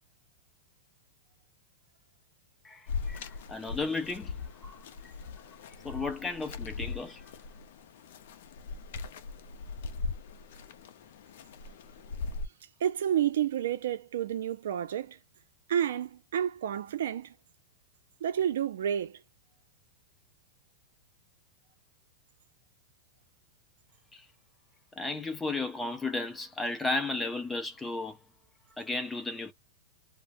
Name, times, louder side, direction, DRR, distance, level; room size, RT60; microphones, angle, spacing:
voice 1, 2.6-4.3 4.6-4.8 5.8-7.3 24.1-24.3 25.0-28.2 28.8-29.5, left 3 dB, 10° left, 0.5 m, -34 dB
sound 1, 2.9-12.5, left 4 dB, 60° left, 0.4 m, -40 dB
voice 2, 12.8-15.2 15.7-17.3 18.2-19.2, right 10 dB, 80° right, 0.5 m, -30 dB
2.3 x 2.0 x 3.4 m
supercardioid pair, 165°, 0 cm